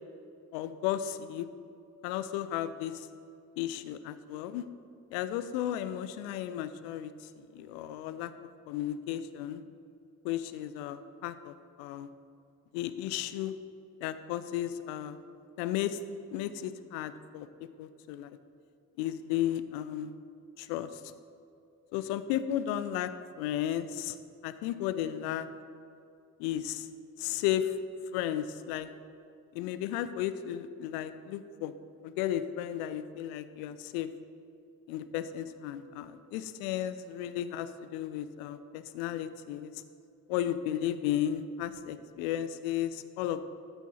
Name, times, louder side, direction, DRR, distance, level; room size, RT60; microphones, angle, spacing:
voice 1, 0.5-1.5 2.0-3.1 3.6-4.7 5.1-7.1 7.4-8.3 8.7-9.6 10.2-12.1 12.7-13.5 14.0-15.2 15.6-16.0 16.3-17.5 17.8-18.4 19.0-20.1 20.6-21.0 21.9-24.2 24.4-25.5 26.4-26.9 27.2-27.8 28.1-28.9 29.5-31.7 32.0-34.1 34.9-39.7 40.3-43.5, left 11 dB, 70° left, 13 dB, 0.6 m, -34 dB
13.5 x 4.5 x 4.1 m, 2.5 s
hypercardioid pair, 45°, 45 cm